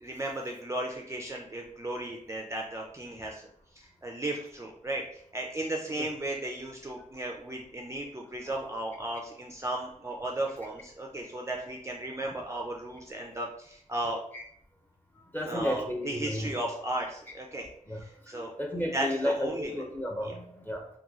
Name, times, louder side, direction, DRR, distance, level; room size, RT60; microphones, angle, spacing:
voice 1, 0.0-3.5 3.8-14.2 15.4-18.5 18.9-19.7 20.2-20.3, right 1 dB, 20° right, -1 dB, 0.4 m, -35 dB
voice 2, 15.3-16.5 17.9-18.0 18.3-20.9, left 1 dB, 15° left, 0 dB, 0.7 m, -32 dB
3.0 x 2.3 x 3.5 m, 0.66 s
wide cardioid pair, 105°, 14 cm